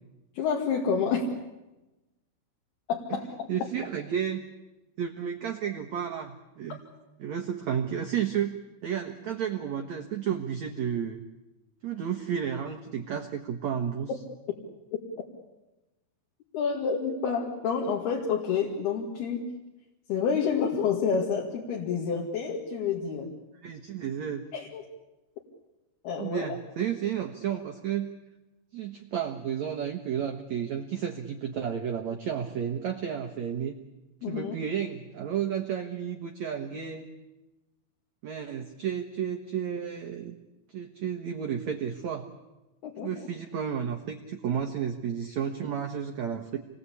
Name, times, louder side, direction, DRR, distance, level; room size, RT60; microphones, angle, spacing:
voice 1, 0.4-1.3 2.9-3.7 14.1-14.2 16.5-19.5 20.1-23.3 24.5-24.8 26.0-26.6 34.2-34.6 42.8-43.1, left 6 dB, 65° left, 0 dB, 3.8 m, -29 dB
voice 2, 3.5-4.4 5.0-6.8 7.2-11.2 11.8-14.1 23.6-24.4 26.2-28.1 28.7-33.8 34.3-37.1 38.2-40.4 40.7-42.3 43.0-46.6, right 8 dB, 75° right, 4 dB, 1.6 m, -32 dB
28.0 x 20.5 x 8.5 m, 1.0 s
omnidirectional pair, 5.3 m